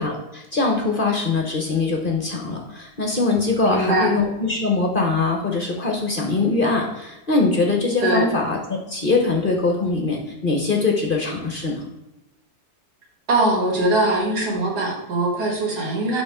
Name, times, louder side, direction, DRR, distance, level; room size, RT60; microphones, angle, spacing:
voice 1, 0.0-8.6 8.9-11.8, left 3 dB, 40° left, 1 dB, 0.9 m, -22 dB
voice 2, 3.6-4.1 8.0-8.2 13.3-16.2, right 1 dB, 80° right, -1 dB, 2.3 m, -21 dB
11.0 x 3.7 x 3.6 m, 0.94 s
omnidirectional pair, 1.7 m